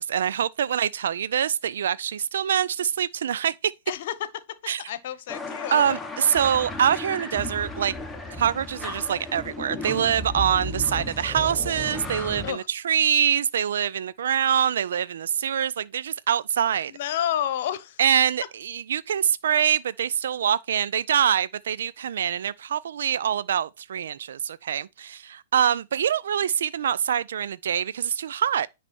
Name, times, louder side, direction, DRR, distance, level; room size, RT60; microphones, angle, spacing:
voice 1, 0.0-3.7 4.7-4.8 5.7-7.9 8.4-16.9 18.0-28.7, right 9 dB, 70° right, 0.3 m, -24 dB
voice 2, 3.9-4.3 4.9-5.8 12.4-12.7 16.9-18.0, left 11 dB, 55° left, 1.0 m, -29 dB
sound 1, 5.3-12.5, left 2 dB, 5° left, 1.2 m, -34 dB
9.9 x 3.3 x 4.3 m
hypercardioid pair, 115°, 0 cm